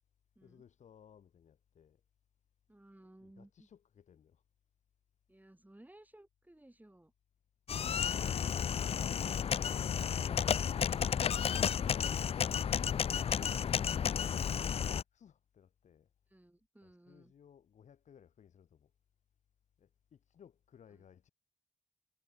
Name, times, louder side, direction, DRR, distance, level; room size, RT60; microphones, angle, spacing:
voice 1, 0.4-2.0 3.2-4.4 14.0-16.1 16.8-18.9 19.8-21.3, left 8 dB, 85° left, 5.8 m, -61 dB
voice 2, 2.7-3.7 5.3-7.1 14.4-14.8 16.3-17.3 20.9-21.0, right 1 dB, 15° right, 7.7 m, -59 dB
sound 1, 7.7-15.0, left 8 dB, 55° left, 0.4 m, -32 dB
cardioid pair, 55°, 12 cm